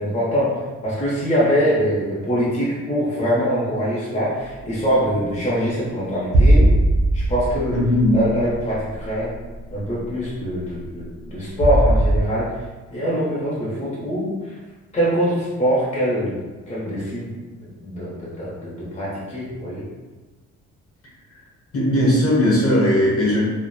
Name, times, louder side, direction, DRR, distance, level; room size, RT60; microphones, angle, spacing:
voice 1, 0.0-6.7 7.1-9.3 9.7-12.6 12.9-14.6 14.9-16.4 16.7-17.3 17.8-19.9, equal, 25° left, -7 dB, 0.7 m, -23 dB
sound 1, 6.3-9.1 9.5-9.6 11.6-12.2, right 1 dB, 65° right, 0.7 m, -18 dB
voice 2, 7.7-8.1 21.7-23.4, left 1 dB, 50° left, -4 dB, 1.0 m, -18 dB
2.7 x 2.1 x 2.2 m, 1.2 s
cardioid pair, 90°, 30 cm